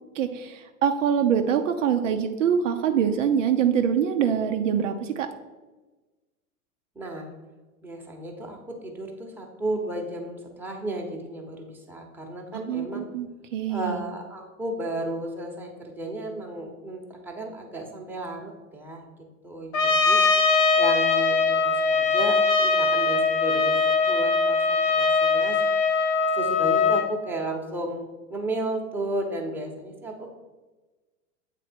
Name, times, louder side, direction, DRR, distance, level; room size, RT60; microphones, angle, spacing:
voice 1, 0.2-5.3 12.5-14.0, right 8 dB, 60° right, 6 dB, 0.7 m, -24 dB
voice 2, 6.9-7.3 7.8-13.1 13.7-19.0 19.4-20.2 20.8-23.8 24.1-25.6 26.3-28.0 28.3-30.3, right 2 dB, 5° right, -1 dB, 1.0 m, -33 dB
Trumpet, 19.7-27.1, left 4 dB, 65° left, 1.0 m, -21 dB
8.3 x 3.5 x 4.3 m, 1.2 s
figure-of-eight pair, 95°, 42 cm